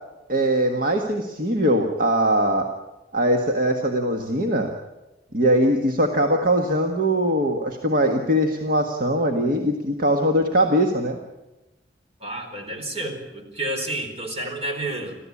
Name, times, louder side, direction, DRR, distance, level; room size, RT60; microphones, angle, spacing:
voice 1, 0.3-2.7 3.1-4.7 5.3-11.2, equal, 55° right, 3 dB, 1.7 m, -21 dB
voice 2, 12.2-15.2, right 1 dB, 35° right, 4 dB, 4.3 m, -30 dB
26.5 x 15.0 x 8.6 m, 1.0 s
head